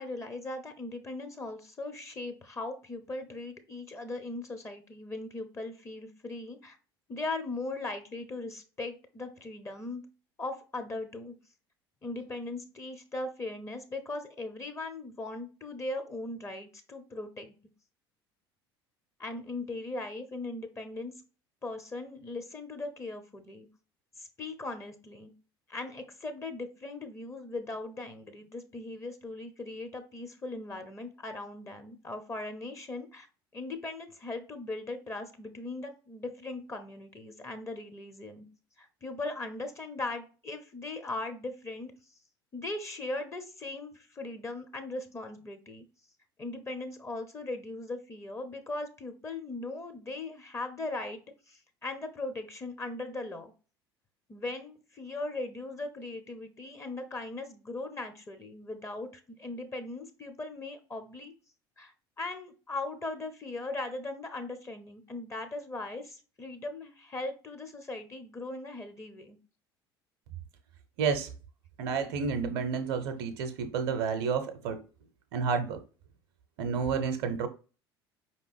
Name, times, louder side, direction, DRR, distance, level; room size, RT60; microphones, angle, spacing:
voice 1, 0.0-6.8 7.1-10.0 10.4-11.3 12.0-17.5 19.2-21.1 21.6-23.7 24.2-25.3 25.7-33.3 33.5-38.5 38.8-41.9 42.5-45.8 46.4-53.5 54.3-61.3 61.8-69.4, left 2 dB, 20° left, 0.7 m, -39 dB
voice 2, 71.0-71.3 71.8-74.8 75.3-75.8 76.6-77.5, right 6 dB, 55° right, 0.7 m, -30 dB
5.1 x 2.9 x 3.2 m
figure-of-eight pair, 65°, 13 cm